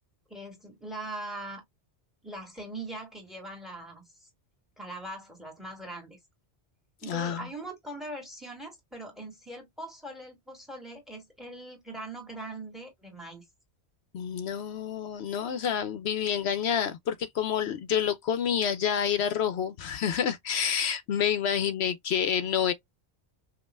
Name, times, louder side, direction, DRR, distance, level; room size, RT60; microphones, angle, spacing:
voice 1, 0.3-1.6 2.2-4.3 4.8-6.2 7.0-13.4, right 2 dB, ahead, 1.9 m, -41 dB
voice 2, 7.1-7.4 14.1-22.7, left 8 dB, 75° left, 0.8 m, -28 dB
5.2 x 2.5 x 2.3 m
omnidirectional pair, 1.1 m